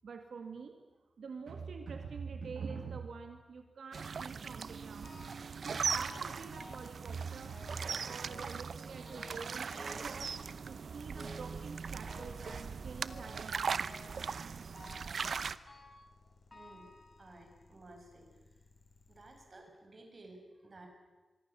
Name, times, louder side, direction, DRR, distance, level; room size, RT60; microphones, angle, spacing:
voice 1, 0.0-0.8 1.2-5.1 5.6-10.4 10.6-14.1, right 5 dB, 90° right, 5 dB, 2.1 m, -45 dB
sound 1, 3.9-15.6, right 5 dB, 65° right, 0.8 m, -39 dB
sound 2, 5.0-5.5 5.7-7.0 7.5-7.9 8.3-8.7 9.1-10.7 11.1-11.6 12.1-12.8 13.1-13.5 13.9-14.3 14.7-15.2 15.7-16.1 16.5-17.6 18.2-18.3 19.1-19.2 19.7-19.8, left 2 dB, 30° left, 4.6 m, -54 dB
sound 3, 15.3-19.5, left 3 dB, 50° left, 7.8 m, -64 dB
voice 2, 16.5-16.9 17.2-18.3 19.1-20.9, right 2 dB, 35° right, 2 dB, 6.3 m, -55 dB
24.5 x 23.5 x 7.1 m, 1.2 s
wide cardioid pair, 135°, 0 cm